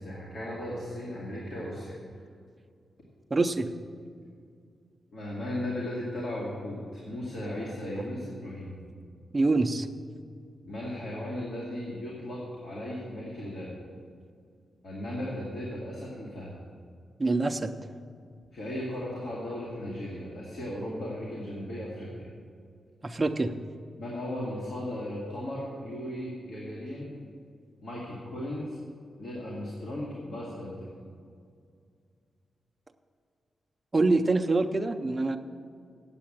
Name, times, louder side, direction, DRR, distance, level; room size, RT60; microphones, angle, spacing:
voice 1, 0.0-2.2 5.1-8.7 10.6-13.7 14.8-16.5 18.5-22.3 24.0-27.2 27.8-28.8 29.2-30.9, left 1 dB, 65° left, -5 dB, 2.3 m, -36 dB
voice 2, 3.3-3.7 9.3-9.9 17.2-17.7 23.0-23.5 33.9-35.4, right 3 dB, 20° right, 4 dB, 0.5 m, -25 dB
8.5 x 8.3 x 8.7 m, 2.2 s
wide cardioid pair, 175°, 0 cm